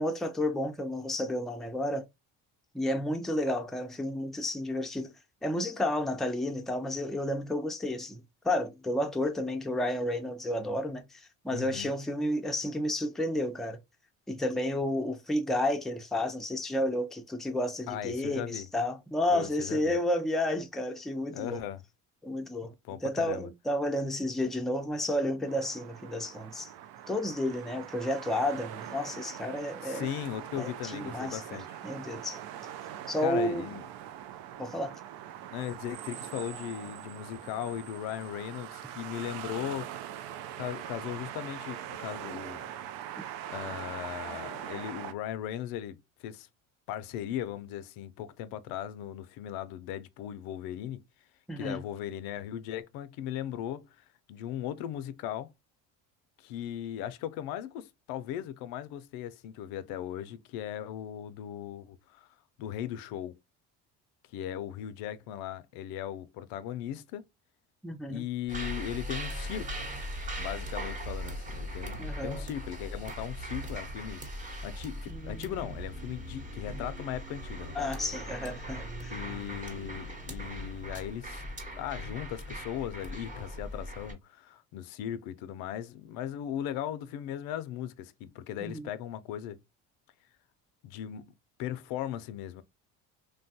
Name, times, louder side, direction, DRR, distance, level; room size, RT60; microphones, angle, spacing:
voice 1, 0.0-2.0 2.7-5.1 5.4-13.8 14.3-21.6 22.2-22.7 23.0-26.7 27.1-30.1 30.6-31.6 31.8-32.4 33.1-33.7 34.6-34.9 51.5-51.8 67.8-68.2 72.0-72.5 75.1-75.4 77.8-79.2 88.6-88.9, left 1 dB, ahead, 0.4 m, -31 dB
voice 2, 11.5-11.9 17.9-18.7 19.3-19.9 21.3-21.8 22.8-23.5 29.8-31.8 33.2-33.9 35.5-39.9 40.5-42.6 43.5-46.5 46.9-51.0 51.6-55.5 56.4-62.3 62.6-63.4 64.3-67.3 68.1-69.9 70.3-74.2 74.6-77.9 79.1-81.4 81.8-89.6 90.8-91.3 91.6-92.6, left 11 dB, 80° left, 0.5 m, -38 dB
sound 1, 25.5-45.1, right 11 dB, 80° right, 0.5 m, -42 dB
sound 2, 68.5-84.1, equal, 20° right, 0.9 m, -39 dB
3.2 x 2.3 x 2.6 m
cardioid pair, 115°, 35 cm